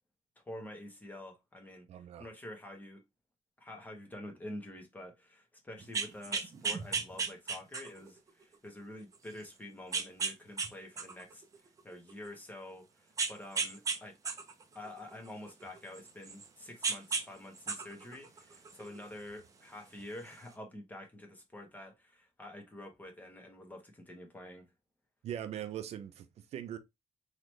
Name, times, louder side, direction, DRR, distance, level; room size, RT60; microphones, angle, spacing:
voice 1, 0.5-3.0 3.6-14.2 14.7-24.7, left 1 dB, 15° left, 1.2 m, -48 dB
voice 2, 1.9-2.3 25.2-26.8, right 10 dB, 70° right, 0.5 m, -41 dB
sound 1, 5.8-8.1 8.7-8.8 9.9-10.7 11.0-12.3 13.2-14.0 14.3-16.5 16.8-17.3 17.6-19.0 20.0-20.1, right 5 dB, 30° right, 0.6 m, -35 dB
3.9 x 3.1 x 3.1 m
cardioid pair, 165°, 11 cm